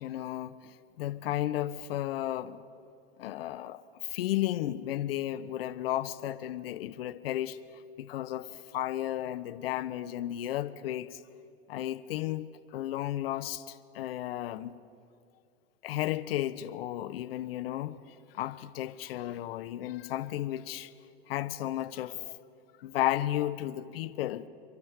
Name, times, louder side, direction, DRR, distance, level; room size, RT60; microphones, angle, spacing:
voice 1, 0.0-2.6 3.2-7.6 8.0-11.2 11.7-14.8 15.8-20.9 21.3-22.4 22.8-24.5, left 13 dB, 65° left, 0.8 m, -34 dB
29.0 x 12.0 x 3.4 m
figure-of-eight pair, 85°, 32 cm